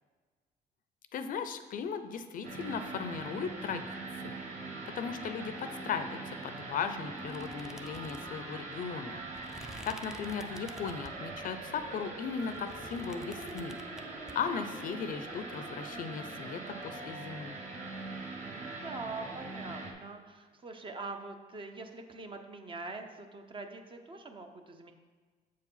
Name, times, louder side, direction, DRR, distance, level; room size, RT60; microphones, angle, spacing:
voice 1, 1.1-3.9 4.1-4.4 4.9-9.2 9.8-13.8 14.3-17.6, left 6 dB, 55° left, 10 dB, 0.5 m, -37 dB
sound 1, 2.4-19.9, right 3 dB, 45° right, 1.4 m, -42 dB
sound 2, 7.3-11.3 11.8-14.3, right 1 dB, 5° right, 0.5 m, -50 dB
voice 2, 9.6-10.0 18.1-24.9, right 3 dB, 30° right, 5 dB, 0.8 m, -44 dB
7.4 x 4.7 x 5.6 m, 1.4 s
cardioid pair, 110°, 17 cm